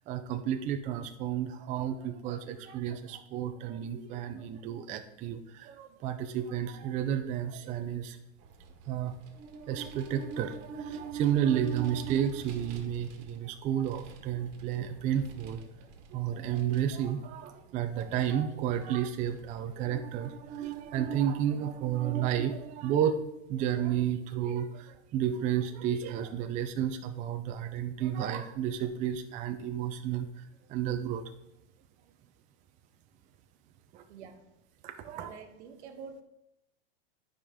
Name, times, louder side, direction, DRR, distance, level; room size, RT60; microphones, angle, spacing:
voice 1, 0.1-8.2 8.9-15.6 16.1-23.2 23.5-31.2 33.9-34.0 34.8-35.3, right 9 dB, 25° right, 6 dB, 0.4 m, -32 dB
Vehicle, 8.4-21.6, right 5 dB, 50° right, 1.5 m, -51 dB
voice 2, 34.1-34.5 35.1-36.2, right 6 dB, 85° right, 6 dB, 1.3 m, -47 dB
11.5 x 5.1 x 3.6 m, 0.86 s
supercardioid pair, 140°, 33 cm